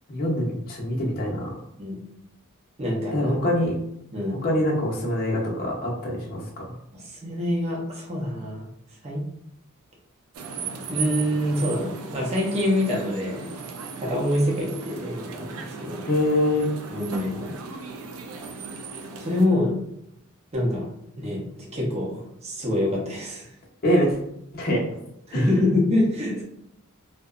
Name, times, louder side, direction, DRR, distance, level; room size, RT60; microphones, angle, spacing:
voice 1, 0.1-1.5 3.1-3.8 4.4-6.7 16.1-16.7 23.8-24.2 24.5-24.8 25.3-25.5, left 1 dB, 45° left, -3 dB, 0.7 m, -24 dB
voice 2, 2.8-3.4 4.1-4.4 6.9-8.7 9.0-9.2 10.9-13.6 14.0-16.1 16.9-17.5 19.2-19.8 20.5-23.5 25.3-26.4, left 1 dB, 30° right, -3 dB, 0.7 m, -26 dB
sound 1, 10.3-19.5, right 5 dB, 70° right, 0.4 m, -36 dB
2.7 x 2.1 x 2.4 m, 0.78 s
head